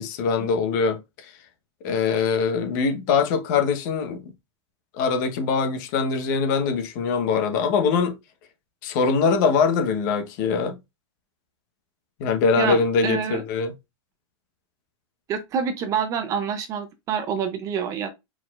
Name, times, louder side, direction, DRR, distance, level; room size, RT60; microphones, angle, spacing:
voice 1, 0.0-1.3 1.8-4.3 4.9-8.2 8.8-10.8 12.2-13.7, left 5 dB, 45° left, 1.0 m, -23 dB
voice 2, 12.6-13.4 15.3-18.1, right 7 dB, 20° right, 0.6 m, -27 dB
4.8 x 4.1 x 2.4 m
supercardioid pair, 165°, 15 cm